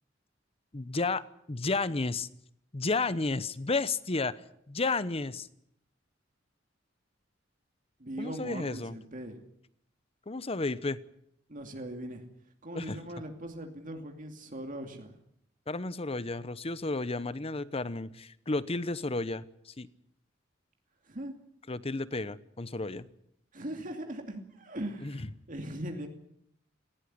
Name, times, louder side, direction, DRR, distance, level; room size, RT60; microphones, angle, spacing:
voice 1, 0.7-2.3 2.7-5.5 8.2-9.0 10.3-11.0 12.7-13.0 15.7-19.9 21.7-23.1 25.0-25.3, left 3 dB, 30° left, 16 dB, 0.9 m, -32 dB
voice 2, 8.0-9.4 11.5-12.2 12.6-15.1 21.0-21.3 23.5-26.1, right 1 dB, 45° right, 4 dB, 2.6 m, -40 dB
19.0 x 17.0 x 9.6 m, 0.73 s
head